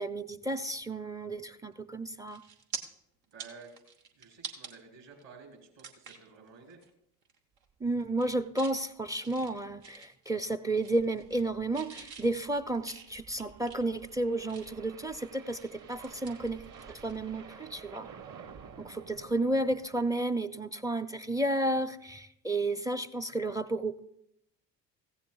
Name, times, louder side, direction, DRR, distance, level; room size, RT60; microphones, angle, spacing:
voice 1, 0.0-2.4 7.8-16.6 16.9-18.1 18.8-24.0, right 2 dB, 10° right, 13 dB, 0.4 m, -32 dB
sound 1, 1.7-1.9 2.3-2.8 3.2-4.7 5.2-5.3 5.8-6.3 6.7-6.9 7.2-7.6 8.0-8.8 9.2-10.5 10.8-11.5 11.7-14.9 15.3-17.2 17.4-17.6 19.5-19.7, right 5 dB, 85° right, 1.2 m, -46 dB
voice 2, 3.3-3.7 4.1-6.8, right 5 dB, 60° right, 1 dB, 4.1 m, -52 dB
sound 2, 7.8-8.0 8.3-8.4 8.7-8.8 9.3-9.6 10.9-20.2, right 6 dB, 40° right, 1.1 m, -52 dB
15.5 x 15.0 x 2.3 m, 0.79 s
hypercardioid pair, 60°, 48 cm